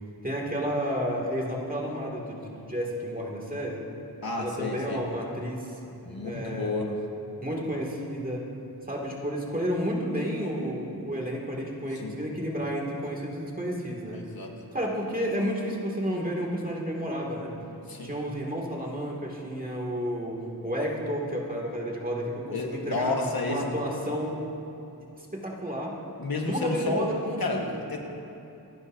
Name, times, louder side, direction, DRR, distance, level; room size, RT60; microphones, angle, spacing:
voice 1, 0.2-3.8 4.4-5.7 6.1-6.9 7.4-8.5 8.9-14.2 14.7-17.5 18.0-23.1 23.4-24.4 25.2-26.0 26.4-27.7, equal, 20° right, -3 dB, 2.3 m, -31 dB
voice 2, 4.2-5.0 6.0-7.0 11.9-12.2 14.1-14.5 17.9-18.1 22.5-23.6 26.2-27.1 27.4-28.0, left 3 dB, 65° left, 1 dB, 1.4 m, -31 dB
25.5 x 11.0 x 2.7 m, 2.8 s
wide cardioid pair, 65°, 39 cm